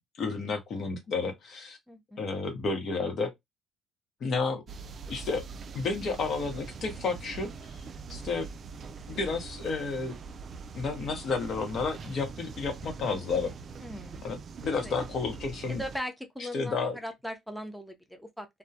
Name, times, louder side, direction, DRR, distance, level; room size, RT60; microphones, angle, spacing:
voice 1, 0.2-1.8 2.2-3.3 4.2-4.6 5.1-5.4 5.7-7.8 8.1-8.5 9.1-10.2 10.7-13.5 14.2-15.8 16.4-17.0, left 4 dB, 60° left, 0.9 m, -31 dB
voice 2, 1.9-2.2 13.8-14.2 14.7-14.9 15.7-18.5, equal, ahead, 0.6 m, -39 dB
sound 1, 4.7-16.0, right 5 dB, 50° right, 0.3 m, -43 dB
2.2 x 2.1 x 2.6 m
supercardioid pair, 65°, 0 cm